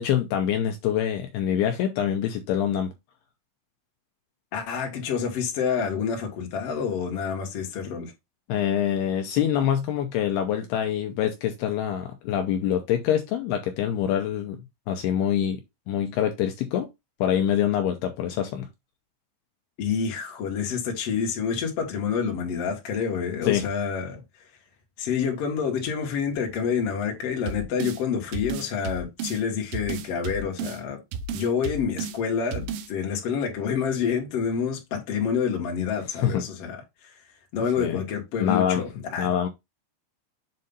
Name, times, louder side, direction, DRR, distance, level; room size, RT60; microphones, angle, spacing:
voice 1, 0.0-2.9 8.5-14.6 14.9-15.6 15.9-16.9 17.2-18.7 23.4-23.7 36.1-36.4 37.8-38.0 38.4-38.8 39.2-39.5, left 10 dB, 85° left, 2.4 m, -25 dB
voice 2, 4.5-8.1 19.8-24.2 25.0-31.0 31.3-36.8 37.5-39.3, left 6 dB, 55° left, 1.8 m, -28 dB
sound 1, 27.5-28.0 28.3-29.4 29.7-30.8 31.1-32.2 32.5-32.9, right 5 dB, 90° right, 2.2 m, -32 dB
7.5 x 2.7 x 5.4 m
omnidirectional pair, 5.3 m